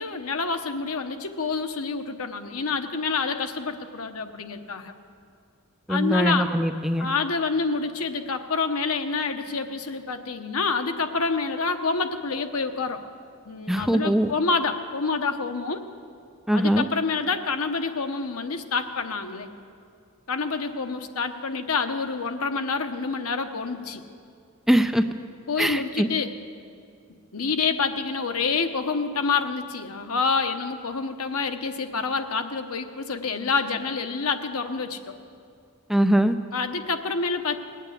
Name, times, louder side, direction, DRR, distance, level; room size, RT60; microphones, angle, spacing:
voice 1, 0.0-4.9 5.9-6.5 7.0-13.0 13.5-15.8 16.5-19.5 20.3-24.0 25.5-26.3 27.3-35.1 36.5-37.6, left 4 dB, 80° left, 7 dB, 1.0 m, -27 dB
voice 2, 5.9-7.1 13.7-14.3 16.5-16.8 24.7-25.0 25.6-26.1 35.9-36.3, equal, ahead, 7 dB, 0.5 m, -21 dB
20.0 x 8.9 x 8.2 m, 2.3 s
head